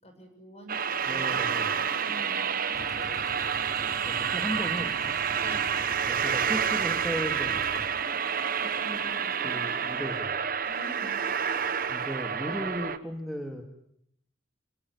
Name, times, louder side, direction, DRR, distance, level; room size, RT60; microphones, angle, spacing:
voice 1, 0.0-1.4 2.0-2.6 5.4-5.8 8.5-9.6 10.6-11.2, right 1 dB, 35° left, 5 dB, 7.0 m, -46 dB
sound 1, 0.7-13.0, right 7 dB, 50° right, 1.2 m, -29 dB
voice 2, 1.1-1.9 4.0-5.0 6.1-8.0 9.4-10.4 11.9-13.6, equal, ahead, 2 dB, 2.2 m, -36 dB
sound 2, 1.5-10.1, left 1 dB, 50° left, 4.5 m, -48 dB
Idling, 2.7-7.8, equal, 20° left, 4.2 m, -44 dB
27.0 x 18.0 x 9.8 m, 0.72 s
head